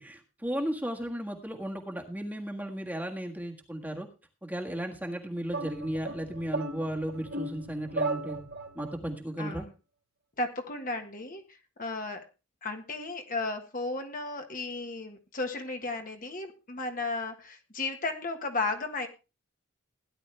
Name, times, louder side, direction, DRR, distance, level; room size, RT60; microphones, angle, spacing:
voice 1, 0.0-4.1 4.4-8.4 8.7-9.7, right 1 dB, 5° right, 2 dB, 1.6 m, -35 dB
sound 1, 5.5-9.0, right 2 dB, 55° right, 2.7 m, -36 dB
voice 2, 9.4-9.7 10.4-11.4 11.8-12.2 12.6-19.1, left 3 dB, 35° left, 4 dB, 1.6 m, -34 dB
17.0 x 10.5 x 3.4 m, 0.30 s
head